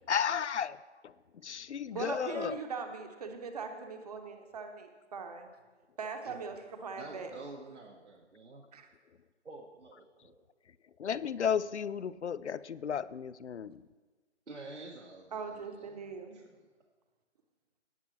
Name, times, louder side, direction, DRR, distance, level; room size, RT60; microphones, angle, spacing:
voice 1, 0.1-0.8 1.0-1.1 1.4-2.6 11.0-13.8, left 7 dB, 70° left, 18 dB, 0.5 m, -33 dB
voice 2, 1.9-5.5 6.0-7.3 8.7-8.9 15.3-16.4, right 5 dB, 35° right, 5 dB, 1.0 m, -40 dB
voice 3, 7.0-8.6 9.4-10.4 14.5-16.6, right 3 dB, 75° right, -1 dB, 1.3 m, -49 dB
18.0 x 7.9 x 3.2 m, 1.3 s
figure-of-eight pair, 145°, 35 cm